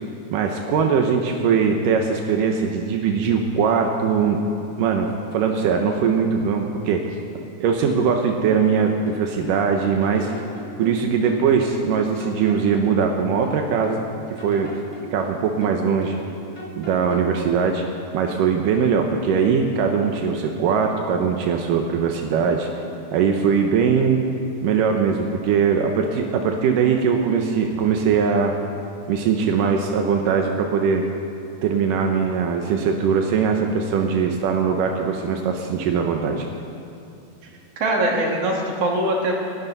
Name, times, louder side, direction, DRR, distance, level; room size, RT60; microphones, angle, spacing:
voice 1, 0.3-4.4 4.8-7.0 7.6-10.3 10.8-14.0 14.4-14.8 15.1-16.2 16.8-17.8 18.1-22.7 23.1-24.2 24.6-28.5 29.1-31.1 31.6-36.5, right 6 dB, 80° right, 3 dB, 2.5 m, -21 dB
sound 1, 8.6-9.7 10.0-11.9 12.2-14.0 14.4-16.3 16.6-17.4, left 1 dB, 10° left, 1.6 m, -38 dB
voice 2, 37.8-39.4, right 1 dB, 50° right, -1 dB, 3.1 m, -22 dB
30.0 x 11.5 x 4.1 m, 2.7 s
omnidirectional pair, 3.8 m